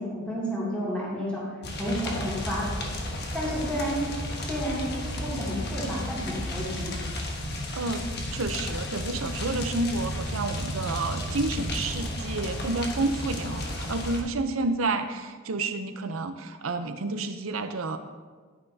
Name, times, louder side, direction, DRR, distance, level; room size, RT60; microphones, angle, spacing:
voice 1, 0.0-1.4 1.8-2.9 3.3-4.1 4.4-4.9 5.2-7.0, equal, 5° left, -8 dB, 2.6 m, -31 dB
sound 1, 1.6-14.2, left 1 dB, 55° left, 1.3 m, -33 dB
voice 2, 7.7-8.1 8.3-18.0, right 3 dB, 90° right, 8 dB, 0.7 m, -30 dB
sound 2, 8.5-13.2, right 2 dB, 10° right, 0.7 m, -40 dB
11.0 x 9.9 x 2.8 m, 1.5 s
head